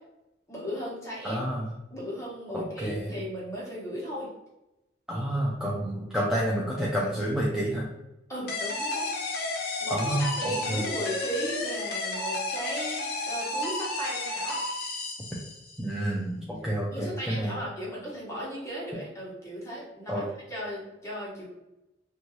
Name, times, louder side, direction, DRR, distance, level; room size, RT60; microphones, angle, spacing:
voice 1, 0.5-1.4 1.9-4.3 8.3-9.4 9.8-14.6 16.9-21.5, equal, 15° left, -6 dB, 1.0 m, -36 dB
voice 2, 1.2-1.7 2.5-3.1 5.1-7.9 9.9-10.9 15.8-17.6 20.1-20.2, right 1 dB, 5° right, -5 dB, 0.4 m, -29 dB
sound 1, 8.5-15.8, left 2 dB, 60° left, 0.5 m, -32 dB
2.6 x 2.2 x 3.0 m, 0.93 s
head